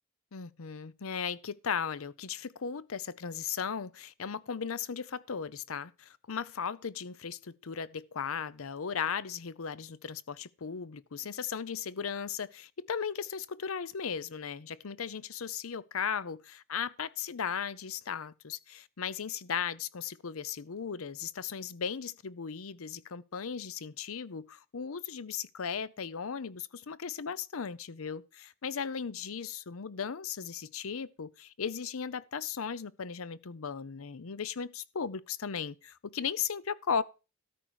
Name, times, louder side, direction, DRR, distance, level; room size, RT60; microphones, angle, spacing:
voice 1, 0.3-37.0, left 6 dB, 80° left, 0.7 m, -36 dB
13.0 x 4.6 x 6.4 m
head